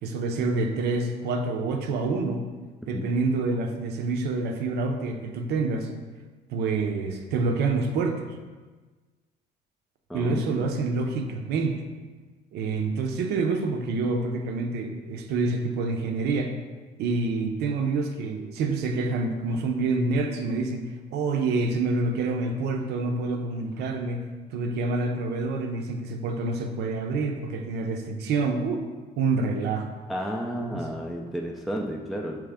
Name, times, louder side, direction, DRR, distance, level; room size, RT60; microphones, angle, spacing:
voice 1, 0.0-2.5 2.9-5.9 6.5-8.3 10.1-11.9 12.5-16.5 17.0-24.2 24.5-28.8 29.2-29.9 30.6-30.8, right 3 dB, 75° right, 4 dB, 0.6 m, -27 dB
voice 2, 10.1-10.7 30.1-32.4, equal, ahead, 0 dB, 0.4 m, -32 dB
4.8 x 3.2 x 3.5 m, 1.3 s
cardioid pair, 110°, 17 cm